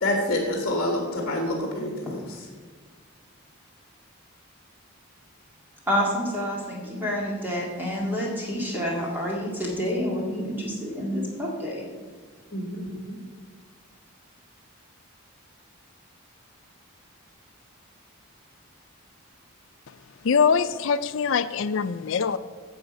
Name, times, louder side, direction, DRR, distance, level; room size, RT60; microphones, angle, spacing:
voice 1, 0.0-2.2 12.5-13.2, left 1 dB, 45° left, 1 dB, 1.6 m, -27 dB
voice 2, 5.9-11.8, equal, 10° right, -3 dB, 2.1 m, -28 dB
voice 3, 20.2-22.4, left 6 dB, 60° left, 12 dB, 0.4 m, -23 dB
10.5 x 7.1 x 5.2 m, 1.5 s
head